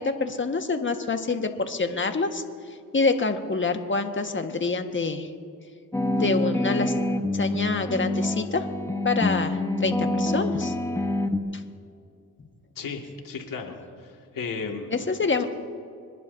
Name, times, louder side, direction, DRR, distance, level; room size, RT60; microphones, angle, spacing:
voice 1, 0.0-2.4 2.9-5.3 6.2-6.9 7.3-8.6 9.0-10.7 11.5-11.6 14.9-15.5, left 4 dB, 35° left, 6 dB, 1.6 m, -26 dB
sound 1, 5.9-11.4, left 1 dB, 10° left, 1.2 m, -26 dB
voice 2, 12.8-13.8 14.0-15.0, left 5 dB, 65° left, 1 dB, 2.2 m, -34 dB
26.5 x 11.0 x 2.7 m, 2.3 s
supercardioid pair, 50°, 35 cm